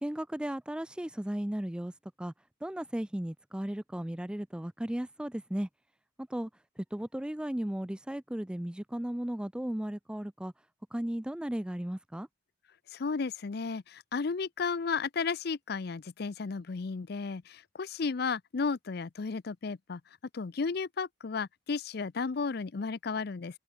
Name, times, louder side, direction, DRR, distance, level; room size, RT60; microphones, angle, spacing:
voice 1, 0.0-1.9 2.2-2.3 2.6-5.7 6.2-6.5 6.8-10.5 10.9-12.3, right 1 dB, 5° right, 0.3 m, -35 dB
voice 2, 12.9-20.0 20.3-23.6, left 5 dB, 55° left, 0.5 m, -33 dB
head